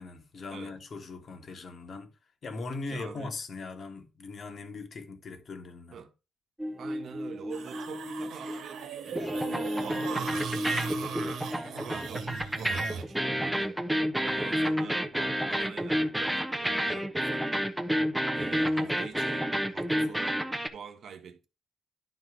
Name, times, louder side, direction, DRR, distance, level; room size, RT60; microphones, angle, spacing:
voice 1, 0.0-2.1 2.4-6.0, left 3 dB, 40° left, 1.4 m, -40 dB
voice 2, 2.9-3.3 5.9-6.1 6.8-11.4 11.7-13.8 14.2-17.5 18.3-21.5, right 7 dB, 50° right, 1.4 m, -46 dB
sound 1, 6.6-8.8 9.1-20.7, equal, 5° right, 0.9 m, -30 dB
sound 2, 7.5-13.0, right 6 dB, 80° right, 1.8 m, -38 dB
11.5 x 4.4 x 4.7 m
cardioid pair, 155°, 0 cm